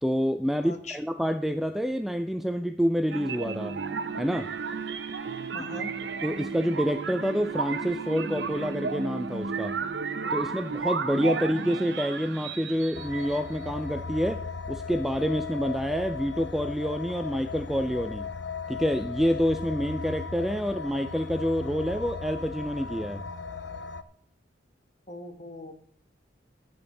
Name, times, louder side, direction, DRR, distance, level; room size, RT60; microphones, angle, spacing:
voice 1, 0.0-3.8 4.2-4.5 6.2-9.8 10.3-18.3 18.7-23.2, equal, ahead, 0.3 m, -28 dB
voice 2, 0.6-1.0 5.5-5.9 25.1-25.7, left 2 dB, 40° left, 1.3 m, -40 dB
sound 1, 3.1-13.7, right 5 dB, 70° right, 0.8 m, -33 dB
sound 2, 12.9-24.0, left 4 dB, 70° left, 0.6 m, -37 dB
12.0 x 5.2 x 7.0 m
head